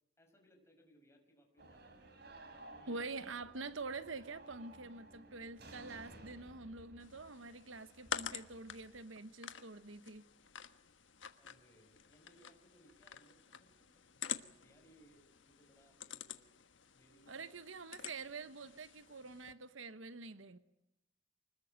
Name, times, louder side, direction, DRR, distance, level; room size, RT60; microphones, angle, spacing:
voice 1, 0.2-2.1 2.7-3.5 11.4-16.5 16.9-17.8, equal, 15° left, 5.5 m, -67 dB
sound 1, 1.6-9.0, right 2 dB, 55° right, 3.9 m, -57 dB
voice 2, 2.9-10.3 17.3-20.6, right 3 dB, 75° right, 1.1 m, -46 dB
sound 2, 7.0-19.5, left 8 dB, 70° left, 1.4 m, -49 dB
25.0 x 21.0 x 8.9 m
head